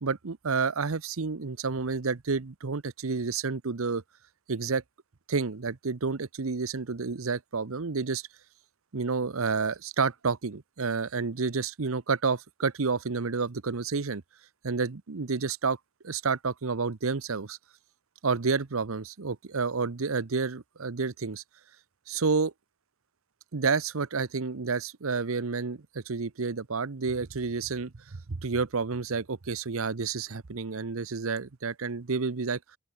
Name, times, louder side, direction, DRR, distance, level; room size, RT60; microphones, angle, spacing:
voice 1, 0.0-4.0 4.5-4.8 5.3-8.3 8.9-14.2 14.6-15.8 16.0-17.6 18.2-21.4 22.1-22.5 23.5-32.6, right 4 dB, 70° right, 0.8 m, -30 dB
open air
head